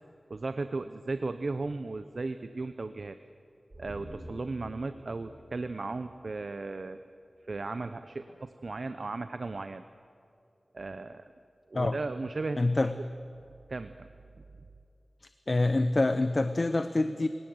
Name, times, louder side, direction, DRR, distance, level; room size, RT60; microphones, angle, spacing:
voice 1, 0.3-3.2 3.8-7.0 7.5-9.8 10.7-11.3 11.7-12.9 13.7-14.1, right 3 dB, 60° right, 10 dB, 0.7 m, -36 dB
sound 1, 3.7-7.1 7.4-7.5, right 1 dB, 25° right, 5.7 m, -49 dB
voice 2, 12.6-12.9 15.5-17.3, left 2 dB, 45° left, 10 dB, 0.8 m, -26 dB
22.5 x 18.0 x 7.9 m, 2.6 s
wide cardioid pair, 70°, 0 cm